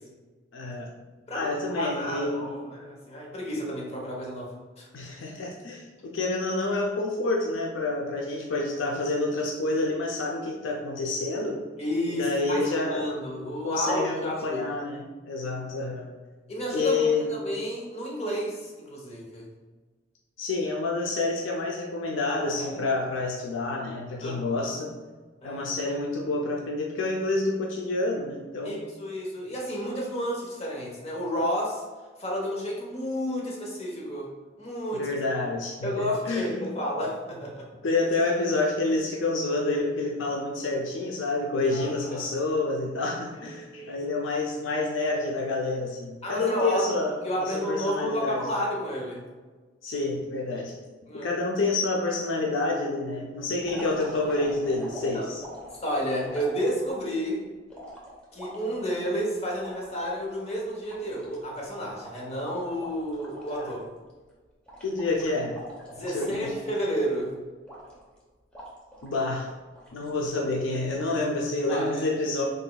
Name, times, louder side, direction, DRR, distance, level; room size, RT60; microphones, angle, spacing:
voice 1, 0.5-0.9 1.3-2.5 4.9-11.6 12.1-13.1 13.6-15.0 15.3-16.1 16.7-17.3 20.4-24.9 25.4-28.8 34.9-36.7 37.8-48.4 49.8-50.7 51.1-55.4 63.6-63.7 64.8-65.6 66.1-66.5 69.0-69.5 69.9-72.4, left 2 dB, 75° left, -1 dB, 0.5 m, -28 dB
voice 2, 1.3-4.9 11.8-14.6 16.5-19.5 22.6-22.8 24.2-24.7 25.4-25.7 28.6-31.8 32.2-34.3 34.6-35.1 35.8-37.7 41.7-42.3 43.3-44.0 46.2-46.9 47.2-49.2 51.1-51.3 55.1-55.3 55.8-57.4 58.3-63.8 65.9-67.3 71.7-72.0, equal, 35° left, -3 dB, 0.9 m, -31 dB
sound 1, 53.6-57.2 57.7-60.2 60.6-60.7 60.9-63.8 64.1-64.3 64.7-67.2 67.7-68.2 68.5-69.2 69.7-70.3 70.7-71.2, equal, 5° left, 0.9 m, -44 dB
3.9 x 3.8 x 2.3 m, 1.3 s
head